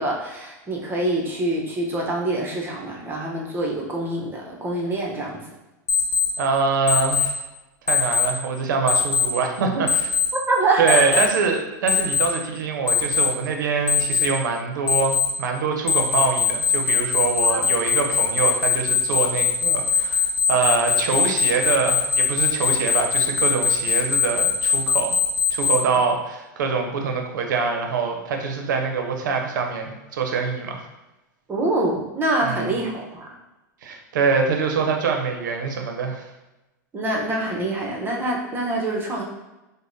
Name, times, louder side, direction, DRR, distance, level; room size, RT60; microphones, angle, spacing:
voice 1, 0.0-5.4 10.5-11.2 17.4-17.6 31.5-33.3 36.9-39.2, right 2 dB, 20° right, -1 dB, 0.8 m, -25 dB
Alarm, 5.9-6.3 6.9-7.3 7.9-8.3 8.9-9.3 9.9-10.3 10.9-11.3 11.9-12.3 12.9-13.3 13.9-14.3 14.9-15.3 15.9-25.8, left 6 dB, 75° left, 0.7 m, -20 dB
voice 2, 6.4-7.4 7.9-10.1 10.8-25.2 25.5-30.9 32.4-32.7 33.8-36.3, right 5 dB, 80° right, 3 dB, 0.6 m, -24 dB
4.9 x 2.1 x 2.6 m, 1.0 s
hypercardioid pair, 115°, 10 cm